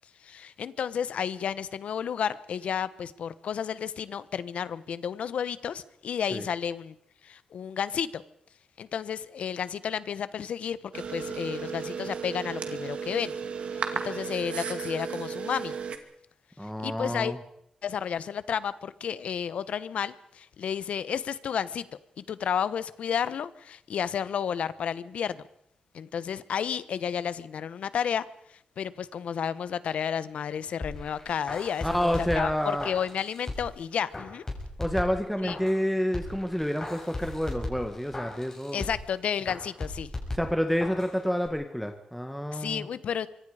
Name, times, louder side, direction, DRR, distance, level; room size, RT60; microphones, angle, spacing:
voice 1, 0.2-6.9 7.2-8.2 8.8-13.3 13.9-15.7 16.8-17.3 17.8-21.9 22.2-25.4 25.9-28.2 28.8-34.4 35.4-35.6 38.7-40.1 42.5-43.3, left 8 dB, 75° left, 15 dB, 1.1 m, -32 dB
sound 1, 10.9-16.0, right 6 dB, 65° right, 2.3 m, -34 dB
voice 2, 16.6-17.4 31.8-32.9 34.8-38.8 40.3-42.9, equal, ahead, 5 dB, 1.6 m, -29 dB
sound 2, 30.8-33.8 34.1-35.8 36.1-39.1 39.5-41.1 41.4-41.5, left 2 dB, 25° left, 6.7 m, -37 dB
25.0 x 24.0 x 5.0 m, 0.73 s
wide cardioid pair, 115°, 2 cm